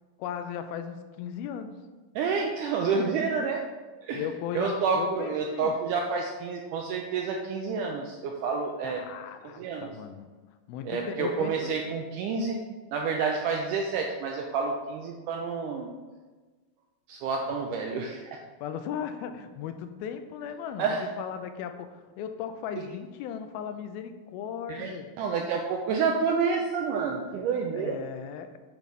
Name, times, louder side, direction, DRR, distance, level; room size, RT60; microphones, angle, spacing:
voice 1, 0.2-1.8 4.1-5.8 8.8-10.3 10.7-11.7 18.6-25.1 27.3-27.5 27.7-28.6, left 8 dB, 90° left, 8 dB, 2.4 m, -37 dB
voice 2, 2.1-3.6 4.0-4.2 4.5-9.0 9.6-9.9 10.8-12.6 12.9-15.9 17.1-18.4 20.8-21.0 22.8-22.9 24.7-28.0, right 5 dB, 80° right, 1 dB, 1.8 m, -29 dB
8.9 x 3.1 x 5.2 m, 1.3 s
omnidirectional pair, 4.2 m